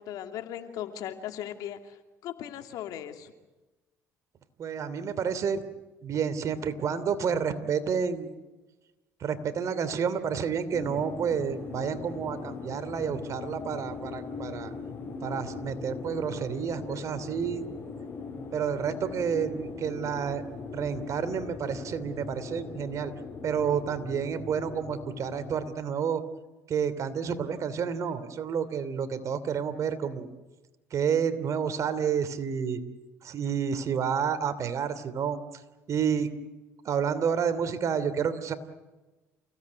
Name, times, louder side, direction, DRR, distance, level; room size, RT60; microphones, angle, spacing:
voice 1, 0.0-3.3, left 10 dB, 75° left, 6 dB, 2.8 m, -38 dB
voice 2, 4.6-5.6 6.0-8.3 9.2-14.7 15.2-17.7 18.5-20.4 20.7-23.1 23.4-26.2 26.7-30.3 30.9-32.8 33.2-35.6 35.9-36.3 36.8-38.5, right 7 dB, 50° right, 11 dB, 2.9 m, -30 dB
sound 1, 10.7-25.8, left 4 dB, 30° left, 7.0 m, -40 dB
29.0 x 17.0 x 9.6 m, 1.1 s
supercardioid pair, 85°, 7 cm